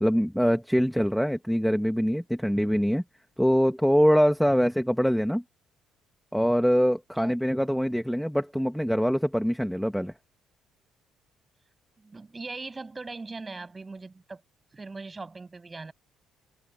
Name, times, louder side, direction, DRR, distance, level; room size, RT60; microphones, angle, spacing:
voice 1, 0.0-3.0 3.4-5.4 6.3-10.1, equal, ahead, 1.3 m, -24 dB
voice 2, 12.0-14.4 14.7-15.9, right 3 dB, 15° right, 7.9 m, -40 dB
cardioid pair, 155°, 0 cm